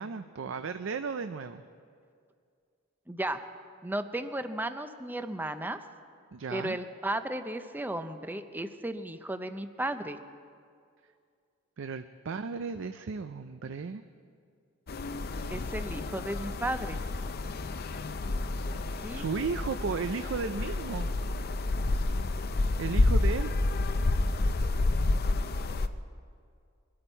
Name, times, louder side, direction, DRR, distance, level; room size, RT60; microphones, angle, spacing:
voice 1, 0.0-1.6 6.3-6.8 11.8-14.0 19.1-21.1 22.8-23.5, right 5 dB, 65° right, 10 dB, 0.5 m, -34 dB
voice 2, 3.1-3.4 3.8-5.8 6.5-10.2 15.5-17.0 18.7-19.3, right 1 dB, 10° right, 9 dB, 0.5 m, -34 dB
sound 1, 14.9-25.9, left 2 dB, 45° left, 0.5 m, -29 dB
22.5 x 12.5 x 4.5 m, 2.3 s
head